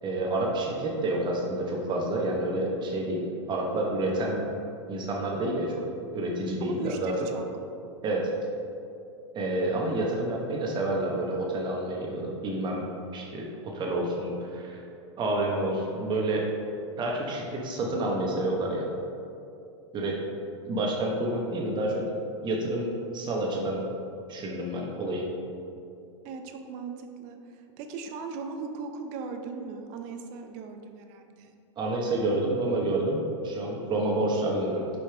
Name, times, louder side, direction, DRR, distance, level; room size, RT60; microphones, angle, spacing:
voice 1, 0.0-4.4 4.9-5.8 6.1-7.1 8.0-8.3 9.3-12.8 13.1-14.8 15.2-16.5 17.0-18.9 19.9-20.2 20.7-22.0 22.4-23.8 24.3-25.2 31.8-34.9, right 1 dB, 30° right, -1 dB, 1.1 m, -29 dB
voice 2, 6.6-7.5 26.2-31.5, right 4 dB, 45° right, 5 dB, 0.7 m, -39 dB
6.5 x 5.4 x 3.4 m, 2.6 s
hypercardioid pair, 110°, 16 cm